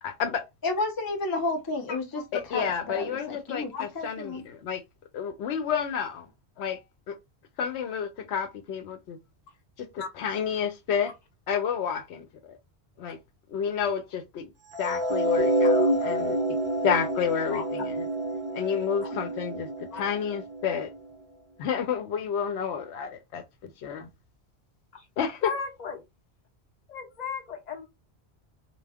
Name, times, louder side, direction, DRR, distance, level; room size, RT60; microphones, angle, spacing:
voice 1, 0.0-0.5 2.3-4.8 5.1-6.3 6.6-6.8 7.1-7.2 7.6-9.2 9.8-11.1 11.5-12.6 13.0-13.2 13.5-14.5 14.8-16.6 16.8-18.0 18.5-20.9 21.6-24.1 25.2-25.5, left 7 dB, 85° left, 0.9 m, -30 dB
voice 2, 0.6-2.2 2.5-4.4, left 2 dB, 25° left, 0.5 m, -31 dB
voice 3, 1.9-2.2 3.7-3.8 10.0-10.1 15.6-15.7 17.5-17.6 19.0-19.1 19.9-20.0 24.9-25.1 25.4-26.0 26.9-27.9, left 6 dB, 45° left, 0.9 m, -36 dB
sound 1, 14.7-21.0, right 1 dB, 35° right, 0.6 m, -28 dB
2.2 x 2.1 x 3.4 m
omnidirectional pair, 1.1 m